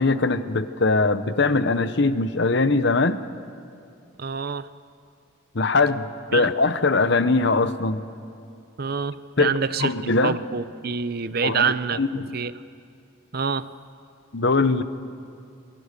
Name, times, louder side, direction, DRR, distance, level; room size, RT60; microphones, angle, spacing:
voice 1, 0.0-3.2 5.5-8.1 9.4-10.4 11.4-12.3 14.3-14.8, left 3 dB, 60° left, 12 dB, 1.0 m, -21 dB
voice 2, 4.2-4.7 6.3-6.5 8.8-9.9 10.2-12.0 12.3-12.5 13.3-13.7, right 5 dB, 50° right, 15 dB, 0.6 m, -26 dB
26.0 x 22.5 x 6.8 m, 2.5 s
head